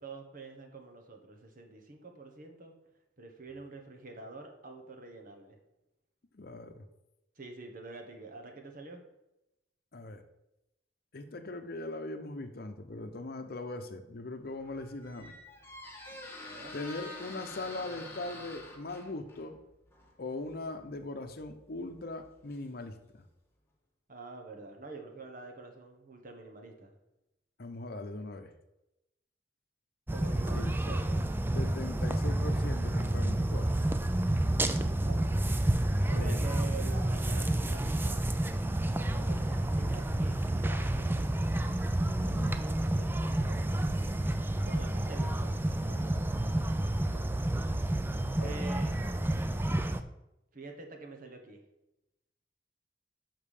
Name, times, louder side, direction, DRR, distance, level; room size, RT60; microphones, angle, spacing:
voice 1, 0.0-2.7 3.2-5.6 7.4-9.0 16.5-16.7 24.1-26.9 30.1-31.2 34.6-35.3 36.1-38.2 39.1-41.4 42.2-44.3 44.6-47.4 48.4-49.1 50.5-51.6, right 3 dB, 50° right, 4 dB, 1.3 m, -47 dB
voice 2, 6.3-6.9 9.9-10.2 11.1-15.3 16.7-19.6 20.2-23.2 27.6-28.5 30.5-30.7 31.5-33.8 36.1-36.5 42.3-43.0 48.3-48.6, left 2 dB, 60° left, 7 dB, 0.8 m, -40 dB
Squeak, 14.4-23.2, left 2 dB, 15° left, 1.3 m, -48 dB
sound 1, 30.1-50.0, right 1 dB, 10° right, 0.4 m, -30 dB
5.9 x 5.5 x 6.5 m, 0.91 s
head